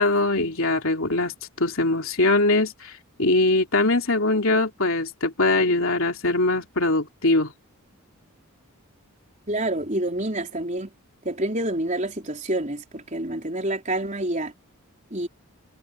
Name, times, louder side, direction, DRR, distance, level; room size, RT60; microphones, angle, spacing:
voice 1, 0.0-1.3 1.6-2.9 3.2-7.5, left 2 dB, 65° left, 3.1 m, -22 dB
voice 2, 9.5-10.9 11.2-14.5 15.1-15.3, right 1 dB, 35° right, 4.5 m, -27 dB
head